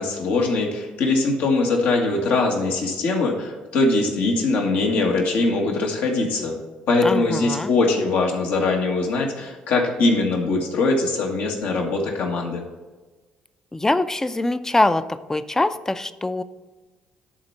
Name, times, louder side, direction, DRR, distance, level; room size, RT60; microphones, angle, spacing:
voice 1, 0.0-6.6 6.9-12.6, left 3 dB, 70° left, 0 dB, 1.8 m, -22 dB
voice 2, 7.0-7.7 13.7-16.4, left 2 dB, 15° left, 12 dB, 0.6 m, -23 dB
11.0 x 4.4 x 5.9 m, 1.2 s
hypercardioid pair, 60°, 3 cm